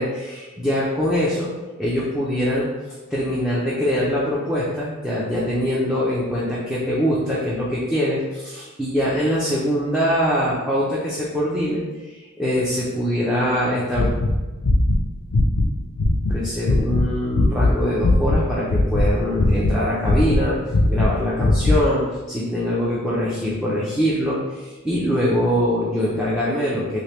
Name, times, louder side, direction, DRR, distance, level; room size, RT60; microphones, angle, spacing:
voice 1, 0.0-1.5 1.8-2.7 3.1-14.1 16.3-20.6 20.9-27.0, equal, ahead, -8 dB, 0.5 m, -23 dB
sound 1, 13.9-16.4 16.7-17.0 17.3-18.4 18.7-19.8 20.0-21.8, left 2 dB, 85° left, 0.5 m, -19 dB
3.3 x 2.8 x 3.0 m, 1.2 s
head